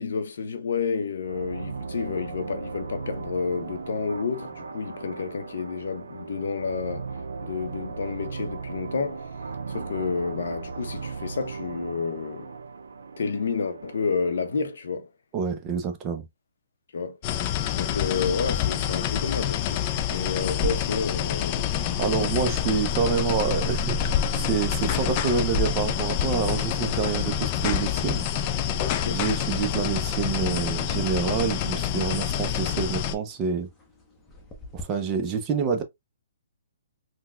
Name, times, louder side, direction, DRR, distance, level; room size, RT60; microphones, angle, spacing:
voice 1, 0.0-7.1 7.4-9.3 9.7-12.5 13.2-15.1 16.9-17.2 17.7-22.3 28.9-29.2, left 5 dB, 70° left, 0.7 m, -30 dB
sound 1, 1.2-14.6, right 4 dB, 85° right, 0.4 m, -37 dB
voice 2, 15.3-16.2 22.0-24.0 24.4-28.2 29.1-33.7 34.7-35.8, right 6 dB, 25° right, 0.5 m, -27 dB
sound 2, 17.2-33.1, left 9 dB, 30° left, 0.3 m, -27 dB
sound 3, 20.6-34.8, right 1 dB, 10° left, 0.7 m, -41 dB
3.9 x 2.2 x 2.2 m
hypercardioid pair, 150°, 0 cm